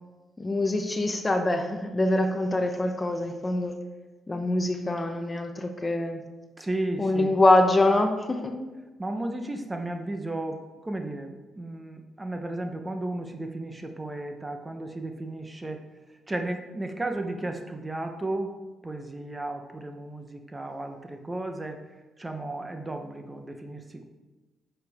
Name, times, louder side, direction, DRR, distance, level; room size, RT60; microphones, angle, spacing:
voice 1, 0.4-3.8 4.3-6.2 7.0-8.5, left 2 dB, 20° left, 6 dB, 0.8 m, -24 dB
voice 2, 6.6-7.4 9.0-15.8 16.3-18.5 18.8-21.8 22.2-24.0, right 2 dB, 15° right, 5 dB, 0.9 m, -34 dB
9.5 x 6.7 x 3.5 m, 1.2 s
cardioid pair, 90°, 0 cm